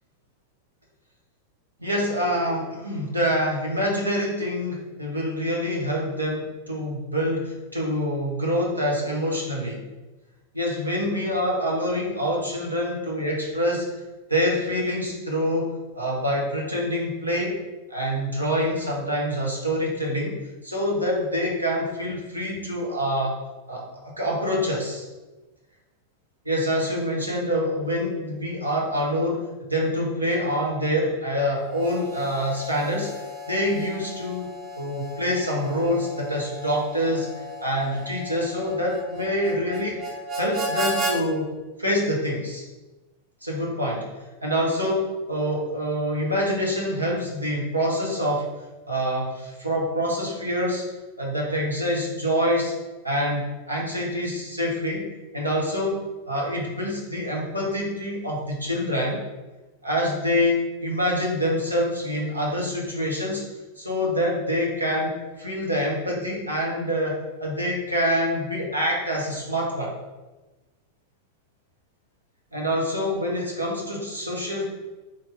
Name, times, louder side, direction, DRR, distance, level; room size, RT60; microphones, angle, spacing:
voice 1, 1.8-9.8 10.5-13.9 14.3-17.6 17.9-20.3 20.6-23.4 23.7-25.1 26.4-33.1 33.5-34.5 34.7-37.3 37.6-42.6 43.4-44.1 44.4-48.5 48.9-50.8 51.2-52.7 53.0-55.1 55.3-56.0 56.3-59.2 59.8-63.4 63.8-69.9 72.5-74.6, equal, 85° right, -3 dB, 1.1 m, -26 dB
Harmonica, 31.6-41.2, right 1 dB, 30° right, 0.8 m, -34 dB
4.1 x 3.3 x 3.6 m, 1.2 s
figure-of-eight pair, 90°, 0 cm